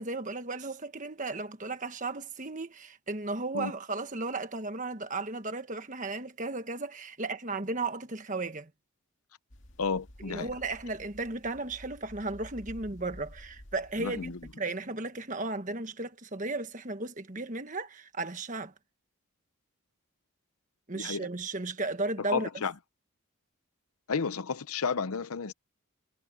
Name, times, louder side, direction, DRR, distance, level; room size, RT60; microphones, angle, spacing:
voice 1, 0.0-8.7 10.2-18.7 20.9-22.5, right 3 dB, 35° right, 1.5 m, -35 dB
sound 1, 9.5-14.5, equal, 55° left, 2.6 m, -51 dB
voice 2, 9.8-10.5 14.0-14.4 20.9-21.3 22.3-22.7 24.1-25.5, left 5 dB, 80° left, 0.8 m, -32 dB
head